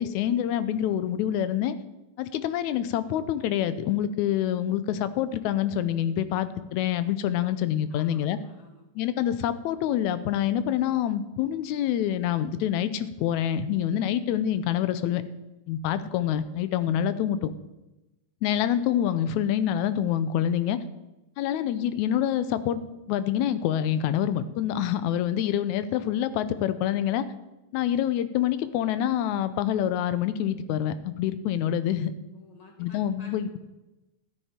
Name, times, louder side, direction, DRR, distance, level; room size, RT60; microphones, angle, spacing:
voice 1, 0.0-1.8 2.2-8.4 9.0-15.2 15.7-17.5 18.4-20.8 21.4-22.8 23.1-27.3 27.7-32.1 32.8-33.6, left 10 dB, 90° left, 13 dB, 2.0 m, -26 dB
voice 2, 7.9-8.9 32.3-33.6, left 2 dB, 15° left, 1 dB, 1.6 m, -53 dB
13.5 x 10.0 x 4.3 m, 1.0 s
omnidirectional pair, 3.3 m